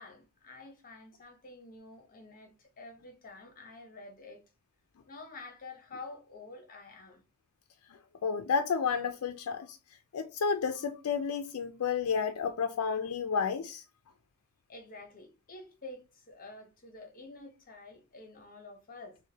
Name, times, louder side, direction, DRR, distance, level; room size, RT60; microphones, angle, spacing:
voice 1, 0.0-4.4 5.1-7.2 14.7-19.2, left 3 dB, 40° left, 0.8 m, -49 dB
voice 2, 8.2-9.8 10.1-13.8, left 6 dB, 85° left, 0.4 m, -31 dB
6.3 x 2.2 x 2.8 m
head